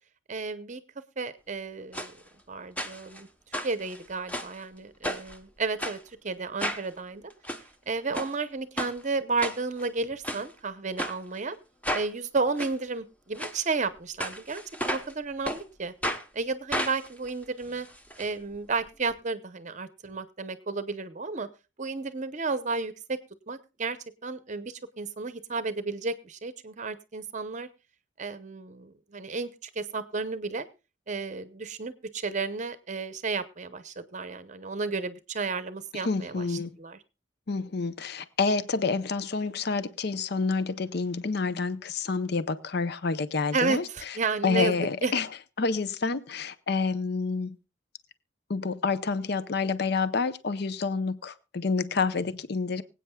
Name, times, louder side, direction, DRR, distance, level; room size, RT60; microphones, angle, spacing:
voice 1, 0.3-0.8 1.2-2.1 2.5-3.3 3.6-7.2 7.9-11.6 11.9-15.9 16.3-17.9 18.2-21.5 21.8-23.2 23.5-27.7 28.2-30.7 31.1-37.0 43.5-44.7 45.0-45.1, right 4 dB, 40° right, 13 dB, 0.7 m, -32 dB
sound 1, 1.9-2.1 2.8-3.2 3.5-4.6 5.0-5.4 5.8-6.0 6.6-6.9 7.3-7.6 8.1-8.3 8.8-8.9 9.4-9.9 10.2-10.4 11.0-11.1 11.8-12.1 12.6-12.7 13.3-13.5 14.2-15.1 15.4-15.6 16.0-16.2 16.7-18.2 18.5-18.6 18.9-19.0, equal, 10° left, 0.9 m, -32 dB
voice 2, 36.0-36.7 37.5-43.8 44.4-45.3 45.6-47.6 48.5-52.8, left 4 dB, 55° left, 14 dB, 0.6 m, -28 dB
24.5 x 8.5 x 2.3 m, 0.30 s
head